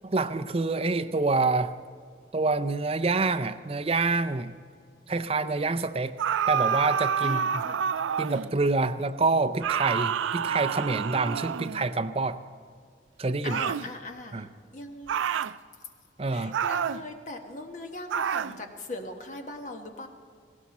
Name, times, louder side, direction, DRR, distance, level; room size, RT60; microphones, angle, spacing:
voice 1, 0.0-1.8 2.3-4.5 5.1-6.2 6.5-7.6 8.2-12.4 13.2-13.6 14.3-14.5 16.2-16.6, right 3 dB, 30° right, 11 dB, 0.5 m, -27 dB
sound 1, 6.2-8.5 9.6-11.9 13.5-13.9 15.1-15.6 16.5-17.0 18.1-18.6, right 7 dB, 90° right, 0.4 m, -28 dB
voice 2, 7.2-7.9 13.4-14.5 14.7-15.4 16.3-20.1, left 2 dB, 40° left, 4 dB, 1.2 m, -40 dB
19.0 x 16.5 x 4.2 m, 2.1 s
head